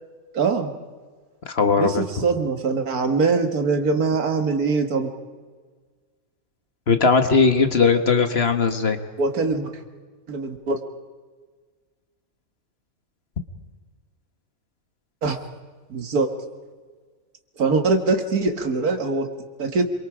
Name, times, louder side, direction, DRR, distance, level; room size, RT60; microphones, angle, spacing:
voice 1, 0.3-0.8 1.8-5.1 9.2-9.7 10.3-10.8 15.2-15.4 15.9-16.3 17.6-19.3 19.6-19.8, right 4 dB, 85° right, 6 dB, 2.2 m, -22 dB
voice 2, 1.5-2.0 6.9-9.0, left 4 dB, 45° left, 8 dB, 1.5 m, -19 dB
27.0 x 23.5 x 5.0 m, 1.5 s
omnidirectional pair, 1.5 m